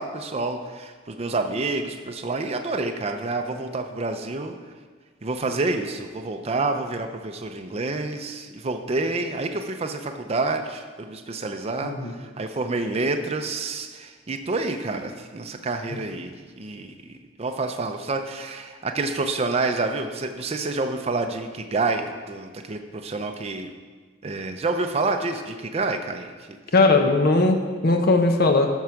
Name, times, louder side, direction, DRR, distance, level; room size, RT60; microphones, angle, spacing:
voice 1, 0.0-4.5 5.2-16.9 17.4-23.7 24.2-26.6, right 3 dB, 35° right, 5 dB, 0.5 m, -28 dB
voice 2, 26.7-28.7, left 3 dB, 55° left, 4 dB, 0.9 m, -19 dB
12.5 x 4.7 x 5.8 m, 1.5 s
head